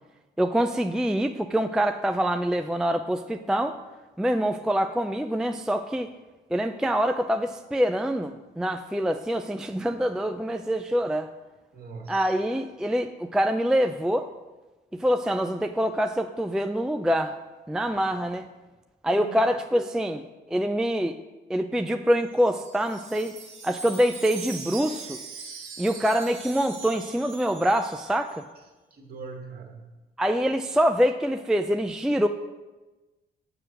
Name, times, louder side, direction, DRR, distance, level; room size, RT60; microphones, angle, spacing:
voice 1, 0.4-3.8 4.2-6.1 6.5-11.3 12.1-14.3 14.9-17.3 17.7-18.5 19.0-20.2 20.5-21.2 21.5-23.4 23.6-25.2 25.8-28.4 30.2-32.3, equal, 5° right, 7 dB, 0.3 m, -25 dB
voice 2, 11.7-12.3 19.1-19.4 28.9-30.0, right 4 dB, 50° right, 0 dB, 1.9 m, -41 dB
Wind chime, 22.2-28.4, right 5 dB, 85° right, 1.5 m, -41 dB
6.8 x 6.3 x 6.0 m, 1.2 s
cardioid pair, 90°, 20 cm